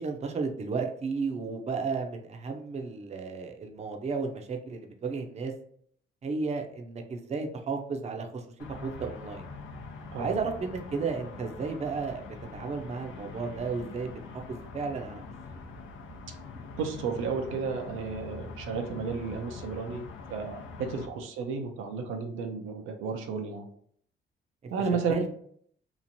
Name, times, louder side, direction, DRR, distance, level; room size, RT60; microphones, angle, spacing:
voice 1, 0.0-5.5 6.2-8.4 8.8-9.5 10.2-12.2 12.5-14.2 14.7-15.2 25.1-25.3, right 4 dB, 35° right, 4 dB, 0.5 m, -33 dB
sound 1, 8.6-21.1, left 4 dB, 75° left, 0.6 m, -44 dB
voice 2, 16.8-23.7 24.7-25.3, right 5 dB, 90° right, 4 dB, 0.5 m, -33 dB
2.9 x 2.4 x 2.6 m, 0.63 s
cardioid pair, 90°, 20 cm